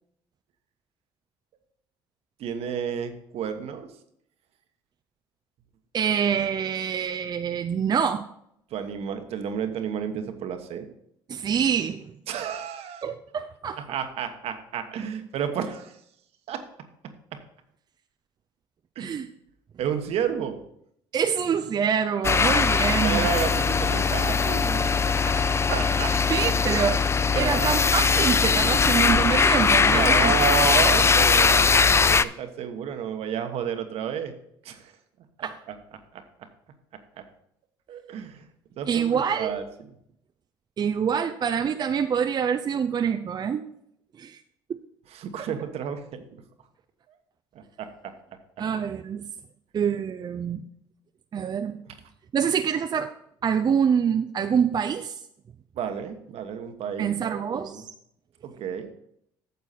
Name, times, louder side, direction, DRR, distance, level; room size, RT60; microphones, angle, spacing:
voice 1, 2.4-3.9 8.7-10.9 12.3-13.0 13.8-15.9 16.5-16.6 19.0-19.2 19.8-20.6 23.0-24.9 25.3-26.2 27.3-27.8 29.9-34.3 34.6-34.9 35.7-35.8 37.9-38.4 38.8-39.6 45.1-46.2 47.5-48.1 55.7-57.8 58.4-58.9, right 8 dB, 65° right, 7 dB, 1.2 m, -31 dB
voice 2, 5.9-8.3 11.3-12.1 13.0-13.8 19.0-19.3 21.1-23.2 25.1-25.6 25.8-27.0 27.4-30.4 35.4-35.5 38.9-39.5 40.8-43.7 44.2-44.4 44.7-44.8 45.4-45.5 48.6-49.3 49.7-50.6 51.3-51.8 52.3-53.1 53.4-55.2 57.0-57.9, right 7 dB, 40° right, 7 dB, 0.5 m, -26 dB
sound 1, 22.2-32.2, left 5 dB, 25° left, 0.4 m, -21 dB
9.5 x 7.0 x 4.3 m, 0.73 s
hypercardioid pair, 65°, 11 cm